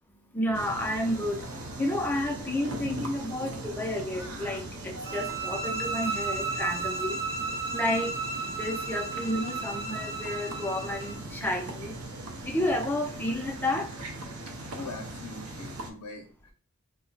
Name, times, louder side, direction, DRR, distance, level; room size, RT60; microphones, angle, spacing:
voice 1, 0.2-14.7, left 1 dB, 10° left, 1 dB, 0.4 m, -32 dB
sound 1, 0.5-15.9, right 2 dB, 70° right, 0.5 m, -40 dB
sound 2, 5.0-11.2, right 3 dB, 40° right, 0.8 m, -34 dB
voice 2, 14.5-16.5, left 3 dB, 70° left, 1 dB, 0.6 m, -43 dB
2.3 x 2.1 x 3.8 m, 0.40 s
head